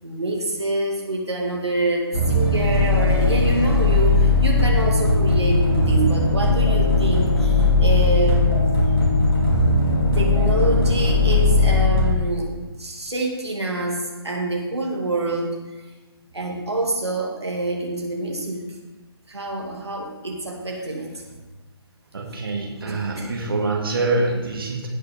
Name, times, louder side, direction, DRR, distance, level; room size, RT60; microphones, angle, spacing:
voice 1, 0.0-8.5 10.1-15.6 16.3-18.7 19.3-21.2 22.9-23.3, right 2 dB, 80° right, -1 dB, 2.1 m, -26 dB
sound 1, 2.1-12.0, left 3 dB, 60° left, 2.8 m, -18 dB
voice 2, 22.1-24.9, right 2 dB, 60° right, -1 dB, 2.1 m, -25 dB
18.0 x 6.6 x 3.5 m, 1.2 s
figure-of-eight pair, 140°, 14 cm